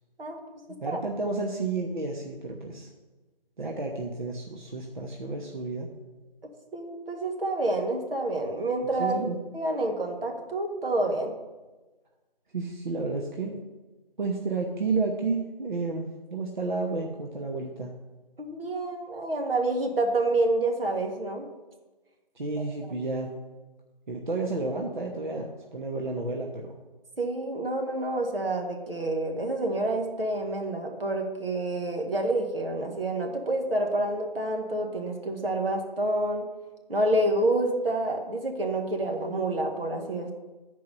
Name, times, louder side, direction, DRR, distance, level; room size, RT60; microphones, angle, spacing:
voice 1, 0.8-2.9 3.6-5.9 9.0-9.4 12.5-13.6 14.2-17.9 22.3-23.4 24.1-26.7, right 3 dB, 55° right, 0 dB, 1.0 m, -31 dB
voice 2, 6.7-9.2 9.5-11.3 18.4-21.5 22.6-22.7 27.2-36.4 36.9-40.3, right 2 dB, 75° right, 2 dB, 1.8 m, -28 dB
10.0 x 4.7 x 5.4 m, 1.2 s
figure-of-eight pair, 175°, 29 cm